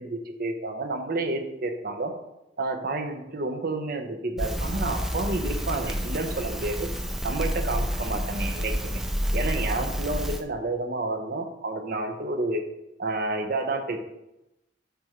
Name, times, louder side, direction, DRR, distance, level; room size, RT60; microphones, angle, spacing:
voice 1, 0.0-2.1 2.6-6.9 7.2-9.0 9.3-12.6 13.0-14.0, right 2 dB, 50° right, 5 dB, 0.7 m, -30 dB
Crackle, 4.4-10.4, equal, ahead, 0.4 m, -29 dB
8.2 x 3.2 x 4.9 m, 0.91 s
head